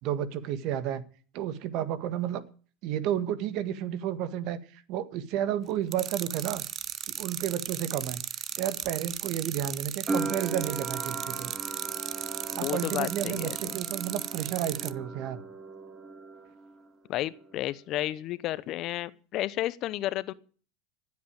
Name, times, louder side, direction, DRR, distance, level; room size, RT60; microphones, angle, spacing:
voice 1, 0.0-1.0 1.3-2.4 2.8-6.6 7.2-8.2 8.6-11.5 12.6-15.4, right 10 dB, 60° right, 1.7 m, -31 dB
sound 1, 5.9-14.9, right 10 dB, 45° right, 0.9 m, -36 dB
sound 2, 10.1-16.9 17.1-18.0, right 3 dB, 25° right, 3.1 m, -38 dB
voice 2, 12.5-13.7 17.1-20.3, left 14 dB, 50° left, 0.8 m, -32 dB
15.0 x 8.5 x 8.9 m
hypercardioid pair, 95°, 0 cm